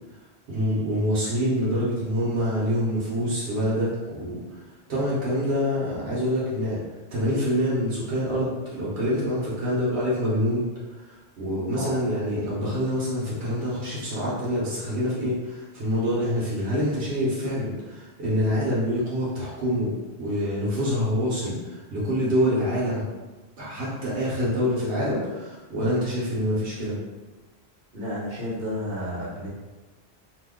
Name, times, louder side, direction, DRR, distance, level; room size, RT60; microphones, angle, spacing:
voice 1, 0.5-4.4 4.9-6.8 7.1-10.7 11.0-19.9 20.2-23.0 23.6-27.0, equal, 85° right, -8 dB, 1.2 m, -26 dB
voice 2, 27.9-29.5, equal, 60° right, -7 dB, 1.2 m, -31 dB
2.8 x 2.2 x 3.6 m, 1.2 s
omnidirectional pair, 1.1 m